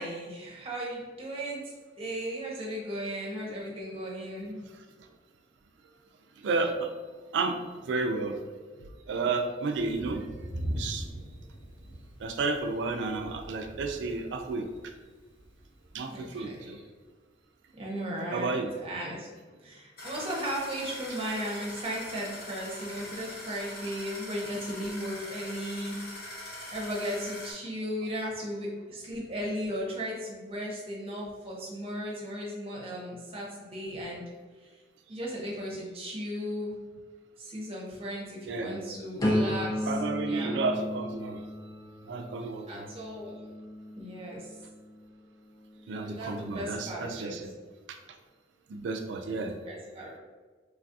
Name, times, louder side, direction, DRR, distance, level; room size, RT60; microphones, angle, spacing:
voice 1, 0.0-4.6 16.1-16.8 17.8-19.3 19.6-26.0 26.7-34.2 34.6-34.7 35.1-36.7 37.4-40.0 40.2-40.5 42.7-43.4 44.0-44.6 46.0-47.4 49.3-50.1, equal, 30° right, -3 dB, 0.7 m, -36 dB
voice 2, 6.4-6.9 7.3-8.4 8.8-10.3 10.7-11.1 12.2-14.7 15.9-16.8 18.3-18.7 38.4-38.8 39.9-41.4 42.1-42.9 45.9-47.5 47.9-48.0 48.7-49.5, right 3 dB, 80° right, 5 dB, 0.3 m, -32 dB
Thunder, 9.8-16.6, equal, 80° left, 1.3 m, -41 dB
sound 1, 20.0-27.5, left 1 dB, 55° left, 0.7 m, -42 dB
sound 2, 39.2-45.1 45.6-46.0, left 1 dB, 20° left, 0.4 m, -34 dB
3.1 x 2.3 x 2.6 m, 1.4 s
head